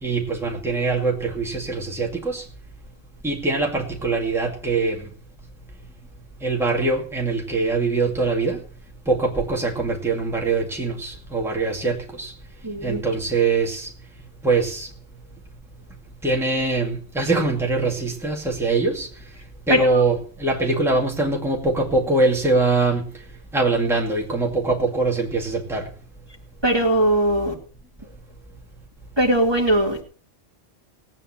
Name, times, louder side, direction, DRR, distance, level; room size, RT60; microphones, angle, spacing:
voice 1, 0.0-2.4 3.2-5.1 6.4-8.6 9.1-12.3 12.8-13.9 14.4-14.9 16.2-19.1 19.7-23.0 23.5-25.9, right 3 dB, ahead, -2 dB, 2.2 m, -23 dB
voice 2, 12.6-13.0 19.7-20.0 26.6-27.5 29.2-30.0, right 1 dB, 20° right, 0 dB, 2.3 m, -20 dB
19.0 x 8.9 x 4.3 m, 0.42 s
omnidirectional pair, 1.3 m